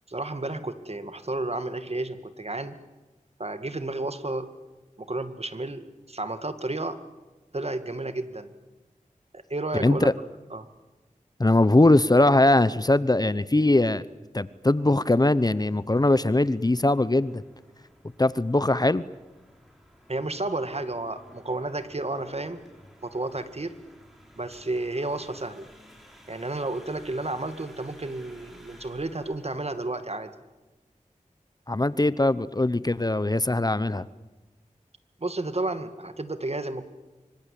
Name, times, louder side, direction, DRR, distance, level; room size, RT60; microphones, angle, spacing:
voice 1, 0.1-2.8 3.4-4.5 5.0-7.0 7.5-8.5 9.3-10.1 10.5-10.7 20.1-22.6 23.0-23.7 24.4-25.7 26.3-30.3 35.2-36.8, right 2 dB, 50° right, 10 dB, 2.1 m, -32 dB
voice 2, 9.8-10.1 11.4-14.0 14.3-17.4 18.2-19.0 31.7-34.1, left 2 dB, 30° left, 17 dB, 0.8 m, -21 dB
sound 1, 14.4-30.0, equal, ahead, 6.6 m, -55 dB
25.5 x 25.0 x 8.5 m, 1.1 s
wide cardioid pair, 50°, 14 cm